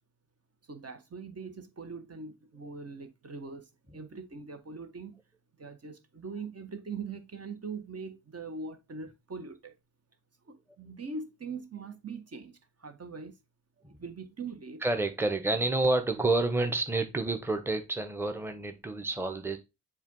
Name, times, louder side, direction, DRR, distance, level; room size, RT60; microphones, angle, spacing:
voice 1, 0.7-5.2 5.6-9.7 10.5-13.3 14.0-14.8, right 4 dB, 40° right, 1.3 m, -42 dB
voice 2, 14.8-19.6, right 2 dB, 5° right, 1.2 m, -29 dB
7.1 x 2.5 x 5.5 m
hypercardioid pair, 45°, 39 cm